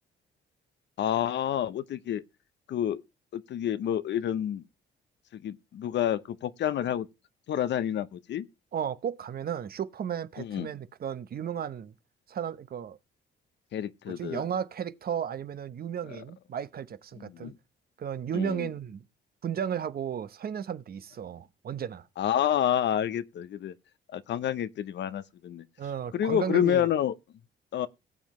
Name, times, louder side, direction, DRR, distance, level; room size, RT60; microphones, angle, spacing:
voice 1, 1.0-2.2 2.7-3.0 3.3-4.6 5.3-7.1 7.5-8.5 10.4-10.7 13.7-14.4 16.1-16.2 17.2-17.5 18.3-18.7 22.2-23.7 24.1-25.7 26.1-27.1 27.7-27.9, left 10 dB, 65° left, 0.7 m, -29 dB
voice 2, 8.7-11.9 12.3-13.0 14.1-17.5 18.0-19.0 19.4-22.1 25.8-26.9, right 8 dB, 50° right, 0.8 m, -34 dB
17.5 x 7.3 x 3.1 m
cardioid pair, 90°, 20 cm